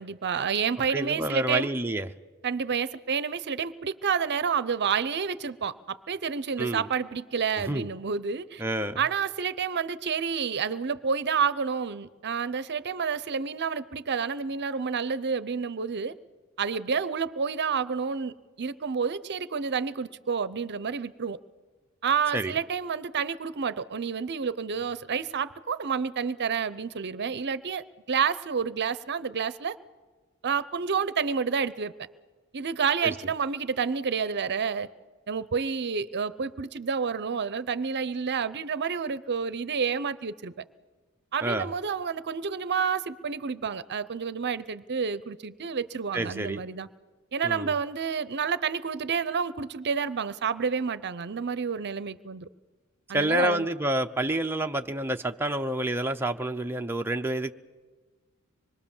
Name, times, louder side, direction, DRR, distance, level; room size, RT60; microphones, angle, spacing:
voice 1, 0.0-1.7 2.4-8.6 9.0-16.1 16.6-21.4 22.0-29.8 30.4-31.9 32.5-34.9 35.3-40.5 41.3-46.9 47.3-52.5 53.1-53.7, right 6 dB, 50° right, 16 dB, 0.7 m, -29 dB
voice 2, 0.9-2.1 6.6-6.9 7.7-7.9 8.6-9.0 22.3-22.5 33.0-33.1 41.4-41.7 46.1-46.6 47.4-47.7 53.1-57.5, right 1 dB, 10° right, 5 dB, 0.7 m, -28 dB
25.5 x 21.5 x 7.2 m, 1.3 s
head